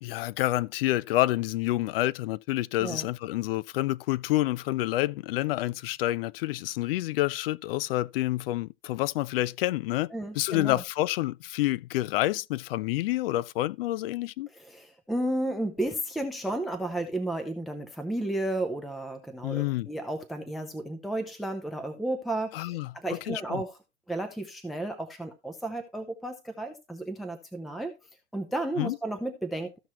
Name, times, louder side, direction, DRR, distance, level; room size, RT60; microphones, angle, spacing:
voice 1, 0.0-10.1 10.3-14.5 19.4-19.9 22.5-22.9 23.3-23.6 28.8-29.0, left 16 dB, 55° left, 0.4 m, -28 dB
voice 2, 10.1-10.8 14.5-23.8 24.1-27.9 28.3-29.8, right 1 dB, ahead, 0.6 m, -33 dB
14.5 x 5.9 x 2.9 m
hypercardioid pair, 135°, 36 cm